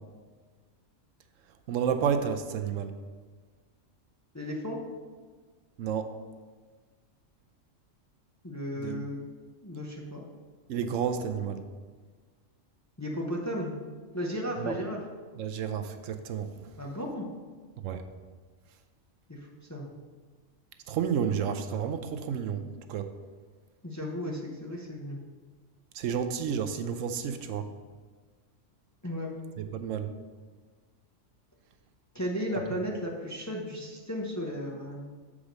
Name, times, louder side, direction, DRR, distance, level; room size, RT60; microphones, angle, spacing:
voice 1, 1.7-2.9 5.8-6.1 8.8-9.0 10.7-11.6 14.6-14.7 15.4-16.5 17.8-18.0 20.9-23.1 25.9-27.7 29.6-30.1, right 7 dB, 80° right, 8 dB, 1.0 m, -31 dB
voice 2, 4.3-4.8 8.4-9.3 9.6-10.3 13.0-13.7 14.1-15.0 16.8-17.3 19.3-19.9 23.8-25.2 29.0-29.3 32.1-35.0, equal, 20° left, -1 dB, 0.6 m, -34 dB
7.4 x 4.9 x 5.1 m, 1.5 s
omnidirectional pair, 1.4 m